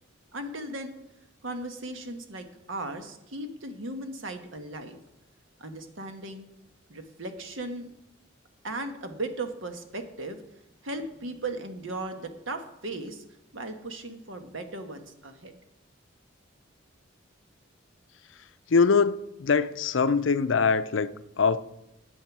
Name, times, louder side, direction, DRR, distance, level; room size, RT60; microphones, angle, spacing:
voice 1, 0.3-0.9 1.4-5.0 5.6-6.5 6.9-7.9 8.6-10.4 10.8-13.2 13.5-15.5, right 2 dB, 85° right, 1.3 m, -37 dB
voice 2, 18.7-21.6, left 5 dB, 75° left, 0.5 m, -23 dB
10.0 x 7.8 x 6.1 m
head